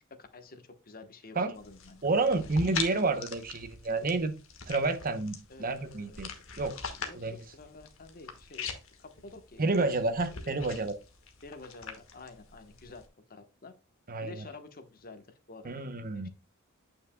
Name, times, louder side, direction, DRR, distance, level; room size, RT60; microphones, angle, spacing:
voice 1, 0.1-2.1 5.5-6.6 6.9-8.7 9.0-9.6 11.4-13.0 13.3-13.7 14.2-16.3, left 3 dB, 45° left, 1.1 m, -49 dB
sound 1, 1.5-13.1, left 5 dB, 70° left, 1.5 m, -43 dB
voice 2, 2.0-4.3 4.7-6.3 6.6-6.8 7.1-7.4 9.6-11.0 14.1-14.5 15.6-16.3, right 3 dB, 45° right, 0.8 m, -29 dB
9.3 x 5.8 x 2.2 m
head